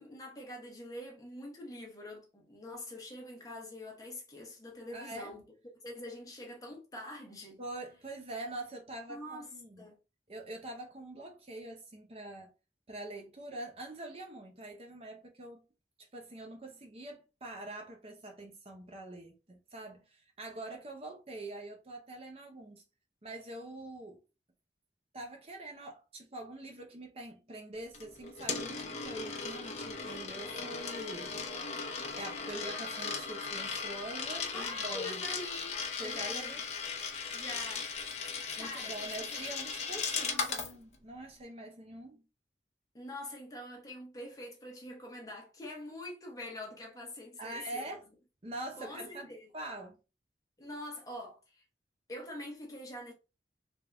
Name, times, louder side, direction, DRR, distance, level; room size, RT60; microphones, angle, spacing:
voice 1, 0.0-5.4 5.8-7.6 9.1-9.5 9.8-10.0 34.5-36.6 37.3-37.9 38.3-38.9 39.3-39.4 40.2-40.7 42.9-47.9 48.8-49.5 50.6-51.6 52.1-53.1, left 1 dB, 20° left, 1.0 m, -45 dB
voice 2, 4.9-5.3 7.6-9.9 10.3-12.5 12.9-15.6 16.1-22.8 23.2-24.2 25.1-31.3 32.2-35.2 36.0-36.6 38.6-42.2 47.4-48.0 48.4-50.0, right 2 dB, 35° right, 0.7 m, -44 dB
Coin (dropping), 27.9-40.7, left 5 dB, 40° left, 0.7 m, -37 dB
3.4 x 2.8 x 3.4 m
head